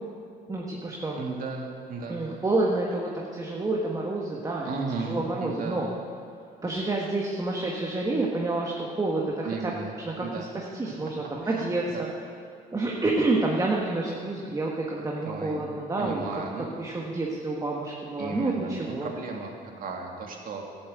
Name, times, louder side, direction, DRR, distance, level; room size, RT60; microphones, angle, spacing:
voice 1, 0.5-1.2 2.1-4.7 5.0-5.9 6.6-9.7 10.0-12.1 12.7-16.2 16.8-19.1, right 2 dB, 20° right, -2 dB, 1.6 m, -28 dB
voice 2, 1.2-2.2 4.6-5.9 9.4-10.5 10.8-10.9 11.4-12.0 15.2-15.6 16.0-16.7 18.2-20.6, right 4 dB, 55° right, 1 dB, 2.3 m, -35 dB
13.0 x 8.4 x 8.0 m, 2.4 s
cardioid pair, 110°, 17 cm